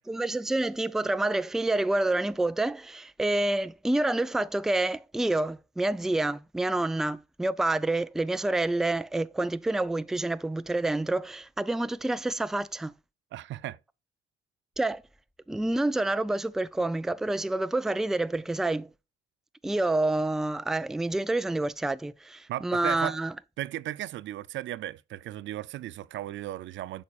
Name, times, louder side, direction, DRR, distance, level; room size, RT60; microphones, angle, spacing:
voice 1, 0.1-12.9 14.8-15.0 15.5-18.9 19.6-23.3, right 2 dB, ahead, 0.4 m, -28 dB
voice 2, 13.3-13.8 22.5-23.2 23.6-27.0, right 14 dB, 70° right, 0.5 m, -35 dB
8.5 x 5.4 x 2.4 m
cardioid pair, 90°, 20 cm